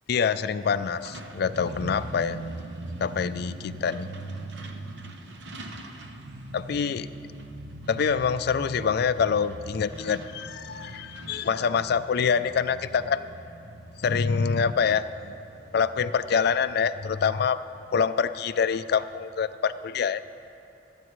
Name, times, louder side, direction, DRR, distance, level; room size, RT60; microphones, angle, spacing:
voice 1, 0.1-2.4 3.0-4.1 6.5-7.1 7.9-13.3 14.0-15.3 15.7-17.6 17.9-20.2, left 6 dB, 60° left, 12 dB, 0.4 m, -26 dB
Truck, 0.6-19.1, right 2 dB, 70° right, 0.9 m, -42 dB
25.5 x 8.9 x 3.2 m, 2.9 s
head